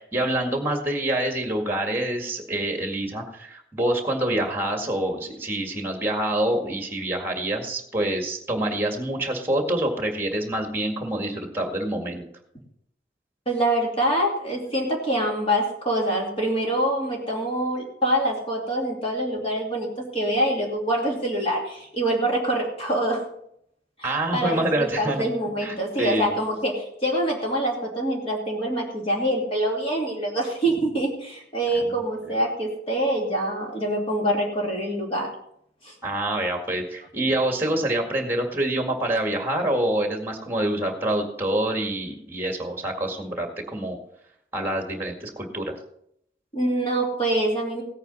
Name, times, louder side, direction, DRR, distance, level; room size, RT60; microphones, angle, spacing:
voice 1, 0.0-12.2 24.0-25.2 25.6-26.4 31.8-32.3 36.0-44.0 44.5-45.8, right 1 dB, 15° right, 3 dB, 2.0 m, -26 dB
voice 2, 13.5-23.2 24.0-35.3 35.8-35.9 46.5-47.8, right 1 dB, 30° left, -1 dB, 2.7 m, -25 dB
17.0 x 9.0 x 4.1 m, 0.73 s
head